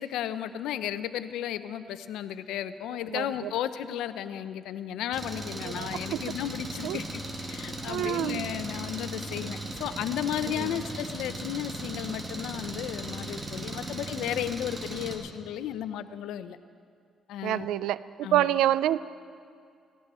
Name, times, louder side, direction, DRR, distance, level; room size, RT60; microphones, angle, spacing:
voice 1, 0.0-7.1 7.5-16.6 17.3-17.7 18.2-18.5, left 10 dB, 90° left, 12 dB, 0.6 m, -34 dB
voice 2, 3.1-3.5 5.6-6.2 6.8-7.0 7.9-8.4 10.5-10.7 13.9-14.0 17.4-19.1, right 12 dB, 90° right, 17 dB, 0.3 m, -28 dB
Engine, 5.1-15.2, right 1 dB, 30° right, 2.0 m, -37 dB
17.0 x 16.5 x 4.3 m, 2.3 s
cardioid pair, 90°, 0 cm